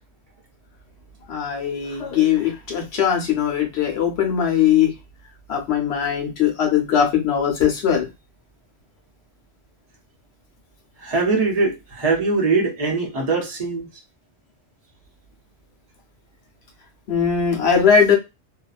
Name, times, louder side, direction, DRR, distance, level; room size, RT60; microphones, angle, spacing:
voice 1, 1.3-4.9 5.5-8.0 17.1-18.2, left 8 dB, 65° left, 1.1 m, -20 dB
voice 2, 11.0-13.8, right 3 dB, 35° right, 0.9 m, -21 dB
2.7 x 2.3 x 2.3 m
omnidirectional pair, 1.2 m